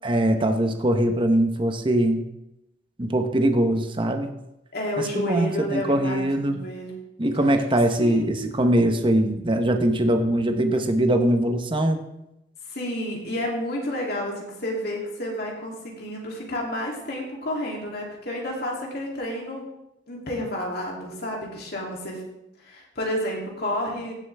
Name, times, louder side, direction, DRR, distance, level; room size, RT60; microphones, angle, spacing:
voice 1, 0.0-2.2 3.0-4.3 5.0-6.6 7.2-12.0, right 1 dB, 25° right, 6 dB, 0.9 m, -22 dB
voice 2, 4.7-6.9 8.0-8.5 12.7-19.6 20.1-22.2 22.6-24.2, left 1 dB, 55° left, -1 dB, 2.8 m, -30 dB
15.5 x 7.6 x 3.4 m, 0.87 s
head